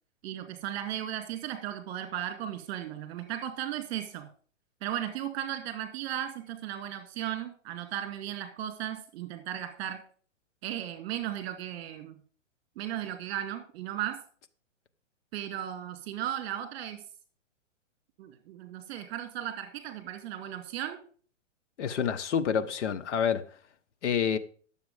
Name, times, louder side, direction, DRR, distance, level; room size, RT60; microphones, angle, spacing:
voice 1, 0.2-4.3 4.8-10.0 10.6-12.2 12.8-14.2 15.3-17.0 18.2-21.0, right 11 dB, 40° right, 1.8 m, -36 dB
voice 2, 21.8-23.4 24.0-24.4, left 7 dB, 65° left, 1.2 m, -28 dB
10.5 x 7.2 x 5.0 m
hypercardioid pair, 135°, 38 cm